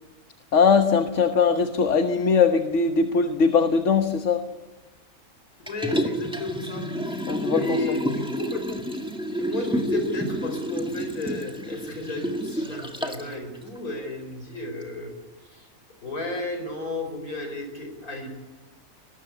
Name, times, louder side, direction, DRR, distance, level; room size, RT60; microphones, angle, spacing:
voice 1, 0.5-4.4 7.3-7.9, left 5 dB, 55° left, 7 dB, 1.5 m, -21 dB
voice 2, 5.6-7.2 7.5-8.8 9.4-15.1 15.5-15.6 16.0-18.3, left 2 dB, 80° left, 5 dB, 5.1 m, -33 dB
Liquid, 5.7-13.3 13.8-13.9, equal, 5° right, 1.8 m, -29 dB
21.5 x 19.5 x 8.3 m, 1.1 s
omnidirectional pair, 1.5 m